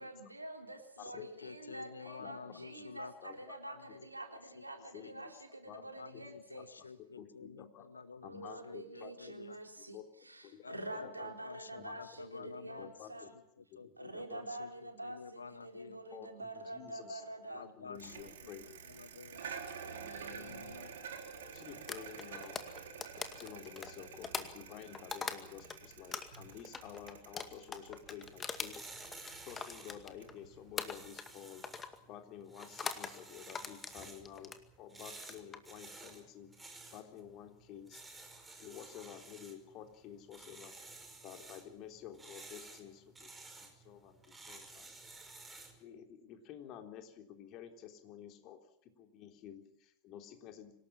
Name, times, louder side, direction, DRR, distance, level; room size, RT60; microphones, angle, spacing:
voice 1, 0.0-6.7 8.2-10.0 10.2-13.3 14.0-17.6 19.8-20.8, right 2 dB, 85° right, 3 dB, 4.0 m, -47 dB
voice 2, 1.0-5.3 6.0-9.6 10.6-12.9 13.6-16.0 17.5-19.6 20.3-21.0, left 4 dB, 75° left, 14 dB, 1.5 m, -51 dB
voice 3, 2.0-2.9 3.2-3.6 4.3-4.4 4.9-5.3 5.7-6.2 7.2-7.9 8.2-9.3 9.8-10.0 10.4-10.7 11.0-11.3 11.8-12.5 12.8-13.3 13.6-14.4 16.1-17.2 17.5-18.7 21.5-22.6 23.2-31.6 32.0-38.1 38.6-40.8 41.2-44.9 45.7-50.7, left 10 dB, 40° left, 5 dB, 3.6 m, -51 dB
Bicycle, 17.9-31.1, right 6 dB, 60° right, 3.9 m, -50 dB
sound 1, 21.9-25.8 26.1-30.4 30.8-31.4 31.6-32.0 32.6-33.1 33.5-34.6 35.1-35.6, left 5 dB, 20° left, 2.2 m, -42 dB
sound 2, 28.2-45.8, right 3 dB, 10° right, 5.0 m, -54 dB
26.0 x 18.5 x 7.4 m, 0.77 s
figure-of-eight pair, 90°, 0 cm